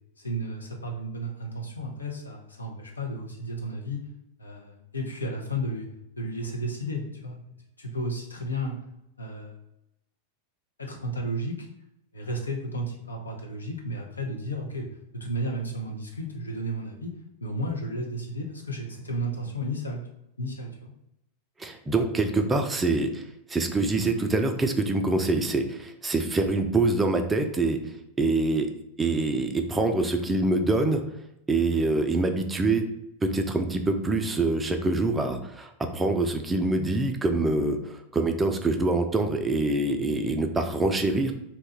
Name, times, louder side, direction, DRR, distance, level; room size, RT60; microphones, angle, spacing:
voice 1, 0.2-4.0 4.4-5.9 6.2-7.5 7.8-8.7 9.2-9.6 10.8-11.7 12.1-14.9 15.1-17.1 17.4-20.0 20.4-20.9, equal, 80° left, 0 dB, 0.7 m, -33 dB
voice 2, 21.6-28.7 29.0-31.0 31.5-32.8 33.2-41.3, right 2 dB, 15° right, 6 dB, 0.4 m, -25 dB
2.8 x 2.3 x 4.2 m, 0.83 s
figure-of-eight pair, 90°, 0 cm